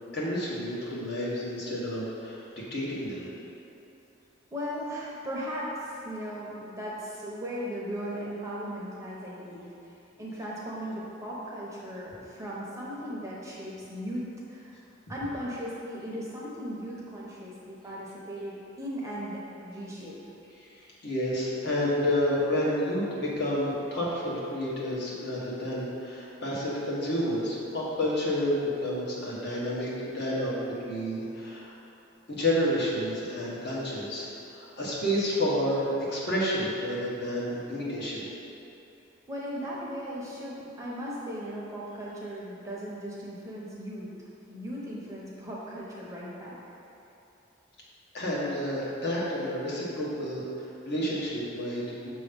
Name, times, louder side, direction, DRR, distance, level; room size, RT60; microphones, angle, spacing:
voice 1, 0.1-3.3 21.0-30.6 30.9-31.7 32.3-38.3 48.1-52.1, equal, 55° left, -6 dB, 1.3 m, -30 dB
voice 2, 4.5-9.9 10.2-14.2 14.5-14.8 15.1-20.2 39.3-44.1 44.5-46.6, equal, 15° right, -6 dB, 0.8 m, -37 dB
6.8 x 3.0 x 5.2 m, 2.9 s
head